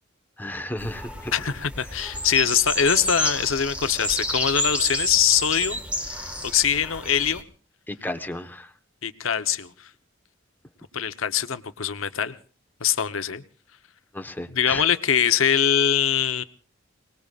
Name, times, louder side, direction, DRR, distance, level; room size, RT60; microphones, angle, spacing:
voice 1, 0.4-1.3 7.9-8.7 14.1-14.8, left 1 dB, 10° left, 5 dB, 1.2 m, -33 dB
sound 1, 0.8-7.4, equal, 5° right, 1.7 m, -30 dB
voice 2, 1.3-6.2 6.5-7.4 9.0-9.9 10.9-12.4 12.8-13.4 14.5-16.4, left 8 dB, 85° left, 11 dB, 0.9 m, -23 dB
28.5 x 19.5 x 2.5 m, 0.40 s
head